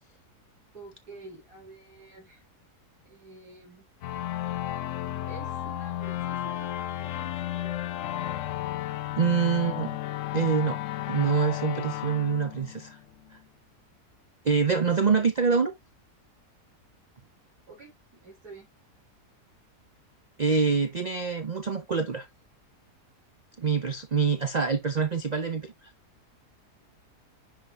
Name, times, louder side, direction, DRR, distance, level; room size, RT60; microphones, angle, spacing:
voice 1, 0.7-2.4 3.0-3.8 5.3-7.7 17.7-18.7, right 2 dB, 80° right, 3.2 m, -49 dB
sound 1, 4.0-13.3, left 13 dB, 65° left, 0.8 m, -33 dB
voice 2, 9.2-10.0 10.3-13.0 14.4-15.7 20.4-22.3 23.6-25.7, right 5 dB, 45° right, 0.5 m, -25 dB
10.5 x 4.1 x 2.4 m
omnidirectional pair, 1.7 m